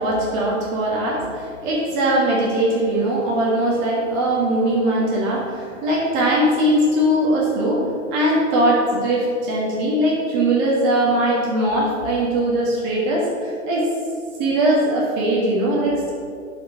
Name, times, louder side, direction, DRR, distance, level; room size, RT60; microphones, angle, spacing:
voice 1, 0.0-13.9 14.4-16.1, right 1 dB, 35° right, -4 dB, 1.9 m, -20 dB
7.2 x 5.2 x 7.0 m, 2.3 s
hypercardioid pair, 125°, 40 cm